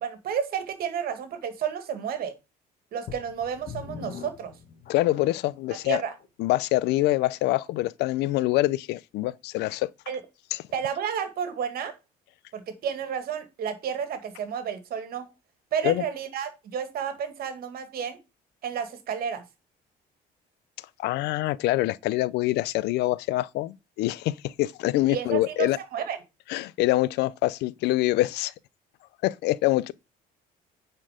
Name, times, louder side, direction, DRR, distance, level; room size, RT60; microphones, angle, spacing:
voice 1, 0.0-2.3 2.9-4.5 5.9-6.1 10.1-10.2 10.7-11.9 12.5-15.3 15.7-18.2 18.6-19.4 25.1-26.2, right 8 dB, 65° right, 1.8 m, -31 dB
sound 1, 3.1-5.5 6.2-6.3 6.9-7.0, left 7 dB, 65° left, 1.6 m, -42 dB
voice 2, 4.9-6.0 6.4-9.9 10.5-10.6 15.8-16.0 21.0-25.8 26.5-28.5 29.2-29.9, left 17 dB, 85° left, 0.5 m, -25 dB
9.9 x 4.4 x 4.9 m
cardioid pair, 110°, 17 cm